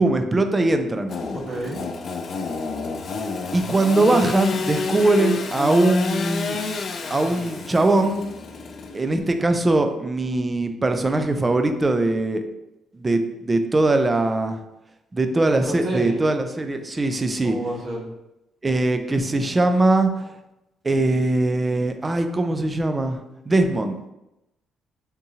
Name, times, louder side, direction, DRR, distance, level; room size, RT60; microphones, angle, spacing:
voice 1, 0.0-1.2 3.5-6.6 7.1-8.2 8.9-12.4 12.9-14.6 15.1-17.6 18.6-20.3 20.8-23.2 23.5-24.0, right 2 dB, 25° right, 7 dB, 0.4 m, -21 dB
Engine / Sawing, 1.1-9.3, left 4 dB, 55° left, 0.3 m, -29 dB
voice 2, 1.3-1.8 15.6-16.2 17.4-18.1, right 2 dB, 55° right, -4 dB, 1.2 m, -29 dB
3.6 x 2.7 x 2.7 m, 0.90 s
cardioid pair, 90°, 0 cm